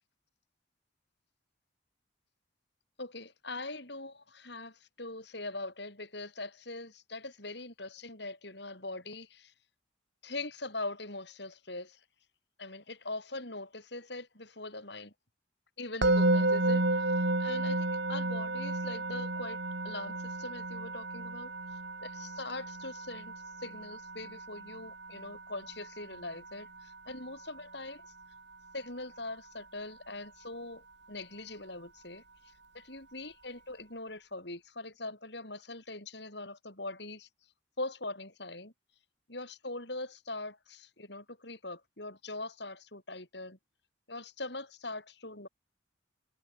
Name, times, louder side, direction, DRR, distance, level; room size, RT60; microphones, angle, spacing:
voice 1, 3.0-9.5 10.2-12.0 12.6-15.1 15.8-21.5 22.0-28.1 28.7-32.2 32.7-37.3 37.8-38.7 39.3-43.6 44.1-45.5, left 2 dB, 60° left, 6.0 m, -42 dB
Musical instrument, 16.0-27.1, right 2 dB, 60° right, 2.6 m, -32 dB
head